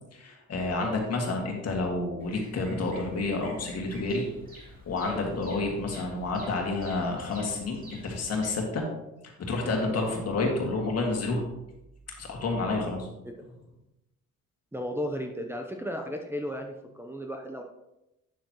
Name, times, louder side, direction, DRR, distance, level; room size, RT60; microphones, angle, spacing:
voice 1, 0.1-4.3 4.9-8.8 9.2-11.4 12.2-13.1, left 3 dB, 55° left, 0 dB, 2.2 m, -29 dB
Bird vocalization bird call bird song, 2.2-8.6, equal, 30° right, 2.9 m, -49 dB
voice 2, 14.7-17.6, equal, 10° right, 1 dB, 0.8 m, -35 dB
9.3 x 7.0 x 3.1 m, 0.92 s
cardioid pair, 90°, 30 cm